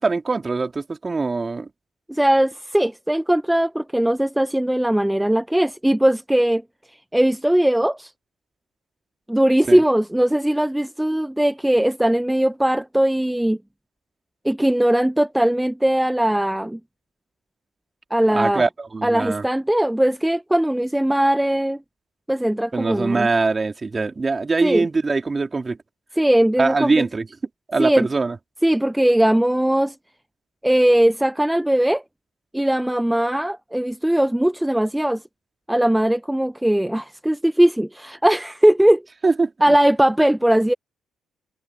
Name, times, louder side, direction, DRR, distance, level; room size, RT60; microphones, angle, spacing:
voice 1, 0.0-1.7 9.7-9.8 18.3-19.4 22.7-25.8 26.6-27.3 27.7-28.4 39.2-39.7, right 3 dB, 30° right, 3.5 m, -22 dB
voice 2, 2.1-6.6 6.9-8.1 9.3-13.6 14.4-16.8 18.1-18.6 19.0-21.8 22.3-23.3 24.6-24.9 26.2-27.1 27.8-28.1 28.6-29.9 30.6-32.0 32.5-35.2 35.7-39.0 39.6-40.7, right 1 dB, 5° right, 0.7 m, -19 dB
cardioid pair, 85°, 0 cm